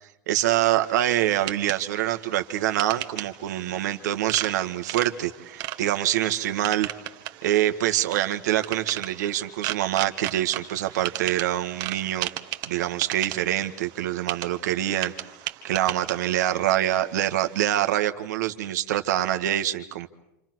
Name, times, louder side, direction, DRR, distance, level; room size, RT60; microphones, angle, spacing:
voice 1, 0.3-6.9 7.4-12.3 12.7-15.1 15.6-20.1, right 12 dB, 80° right, 7 dB, 1.7 m, -25 dB
sound 1, 0.8-17.6, right 15 dB, 50° right, 1.5 m, -37 dB
28.0 x 27.5 x 6.2 m, 0.89 s
supercardioid pair, 130°, 9 cm